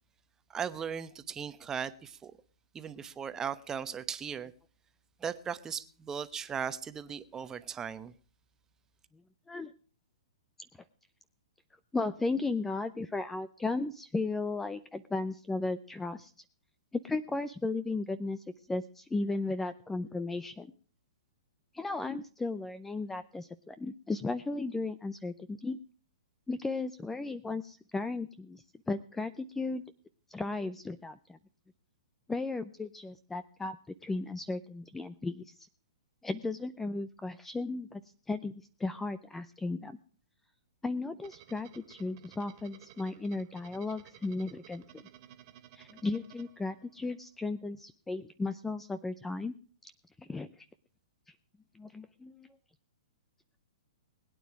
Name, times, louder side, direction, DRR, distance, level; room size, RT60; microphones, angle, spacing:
voice 1, 0.5-2.3 2.7-4.5 5.2-8.1, right 7 dB, 15° right, 1.0 m, -37 dB
voice 2, 11.9-16.3 17.0-20.7 21.7-25.8 26.5-29.8 30.3-31.4 32.3-33.8 34.0-35.7 36.2-38.0 38.3-40.0 40.8-45.0 45.7-49.5 49.8-49.9 50.2-50.7 51.7-52.5, left 3 dB, 5° left, 0.6 m, -35 dB
sound 1, 41.2-47.2, right 12 dB, 40° right, 2.0 m, -56 dB
21.0 x 9.4 x 4.7 m
hypercardioid pair, 135°, 3 cm